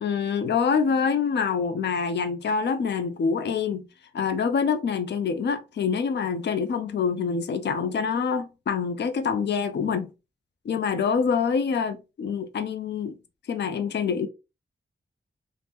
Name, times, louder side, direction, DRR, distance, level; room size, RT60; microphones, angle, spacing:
voice 1, 0.0-3.9 4.1-10.1 10.7-13.2 13.5-14.3, left 6 dB, 60° left, 0.4 m, -26 dB
2.7 x 2.1 x 3.4 m
wide cardioid pair, 75°, 20 cm